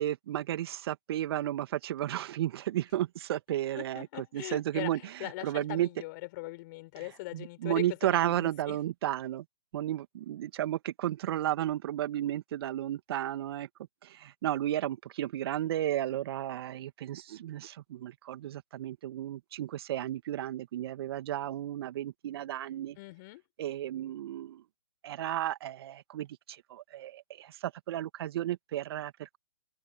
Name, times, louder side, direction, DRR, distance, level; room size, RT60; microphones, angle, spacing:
voice 1, 0.0-4.1 4.3-5.0 5.4-5.9 7.3-9.4 9.7-13.7 14.0-23.0 23.6-24.6 25.0-29.4, right 12 dB, 40° right, 2.2 m, -33 dB
voice 2, 3.7-8.8 23.0-23.4, left 22 dB, 30° left, 5.8 m, -41 dB
figure-of-eight pair, 135°, 20 cm